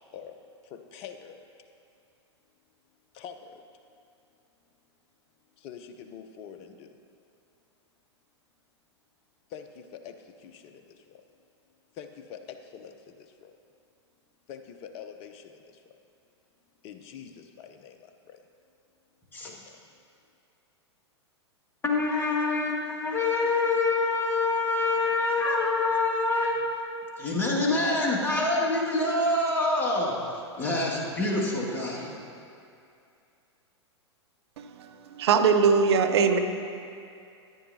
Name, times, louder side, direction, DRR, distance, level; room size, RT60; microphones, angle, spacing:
voice 1, 0.6-1.5 3.1-3.5 5.6-7.0 9.5-10.1 10.4-10.8 11.1-11.2 12.0-13.2 13.4-13.5 14.5-15.8 16.8-18.0 18.3-18.4 19.4-19.7, left 7 dB, 40° left, 7 dB, 0.7 m, -45 dB
voice 2, 21.8-26.6 27.2-30.1 30.6-32.1, left 2 dB, 15° left, -5 dB, 2.0 m, -26 dB
voice 3, 34.6-34.9 35.2-36.4, right 5 dB, 65° right, 7 dB, 0.8 m, -21 dB
13.5 x 9.9 x 2.8 m, 2.5 s
figure-of-eight pair, 100°, 15 cm